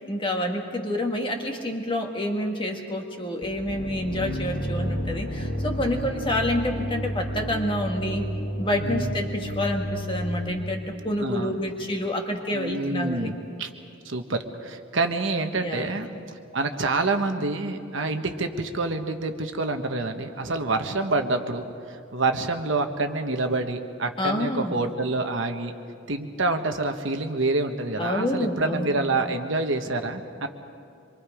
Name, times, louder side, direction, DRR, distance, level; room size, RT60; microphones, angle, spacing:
voice 1, 0.0-8.3 8.6-13.3 15.6-16.0 24.2-24.8 28.0-29.0, left 1 dB, 25° left, 2 dB, 1.7 m, -28 dB
sound 1, 3.4-11.3, equal, 60° left, 1.4 m, -31 dB
voice 2, 5.8-6.2 8.8-9.2 11.2-11.6 12.5-13.3 13.6-13.7 14.0-16.1 16.5-25.8 26.1-30.5, right 3 dB, 60° right, 6 dB, 1.2 m, -27 dB
26.5 x 23.5 x 5.0 m, 2.4 s
head